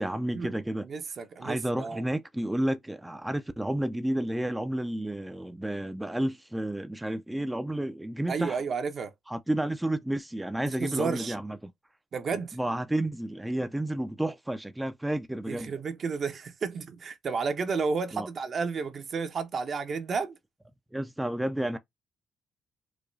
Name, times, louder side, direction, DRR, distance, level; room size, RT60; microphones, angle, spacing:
voice 1, 0.0-0.9 1.4-8.6 9.3-11.7 12.6-15.7 18.1-18.3 20.9-21.8, right 1 dB, 10° right, 0.4 m, -31 dB
voice 2, 0.8-2.0 8.3-9.1 10.8-11.3 12.1-12.6 15.5-20.4, right 5 dB, 50° right, 0.9 m, -32 dB
4.7 x 2.2 x 2.6 m
cardioid pair, 90°, 0 cm